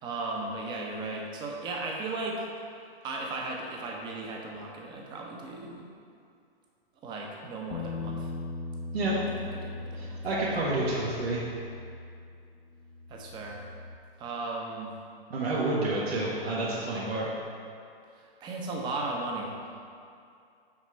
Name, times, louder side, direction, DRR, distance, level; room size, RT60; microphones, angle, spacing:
voice 1, 0.0-2.5 3.0-5.8 7.0-8.3 9.1-10.3 13.1-13.6 14.2-14.9 18.1-19.7, right 2 dB, 15° right, 0 dB, 0.6 m, -36 dB
sound 1, 7.7-14.0, left 3 dB, 85° left, 0.6 m, -39 dB
voice 2, 8.9-9.3 9.9-11.4 15.3-17.3, right 2 dB, 80° right, -7 dB, 1.4 m, -29 dB
6.0 x 5.1 x 4.3 m, 2.4 s
hypercardioid pair, 140°, 31 cm